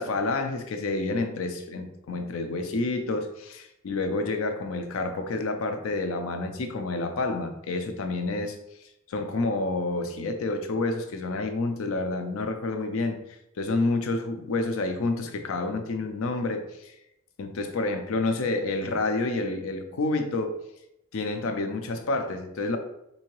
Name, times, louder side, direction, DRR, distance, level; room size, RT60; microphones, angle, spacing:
voice 1, 0.0-8.6 9.1-13.2 13.6-16.9 17.4-20.6 21.1-22.8, left 2 dB, 65° left, 6 dB, 0.4 m, -29 dB
3.7 x 2.7 x 3.0 m, 0.83 s
head